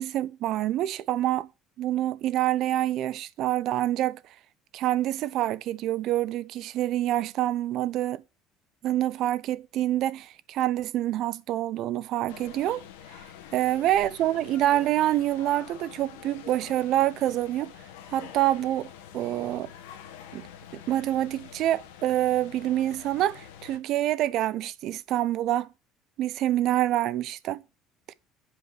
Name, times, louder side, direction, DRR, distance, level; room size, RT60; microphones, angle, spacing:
voice 1, 0.0-1.5 1.8-4.2 4.7-8.2 8.8-12.8 13.5-17.7 18.1-19.7 20.3-20.5 20.7-25.7 26.2-27.6 28.1-28.2, right 13 dB, 65° right, 0.7 m, -26 dB
sound 1, 12.3-23.8, left 9 dB, 90° left, 1.5 m, -46 dB
8.1 x 5.2 x 7.5 m
supercardioid pair, 85°, 0 cm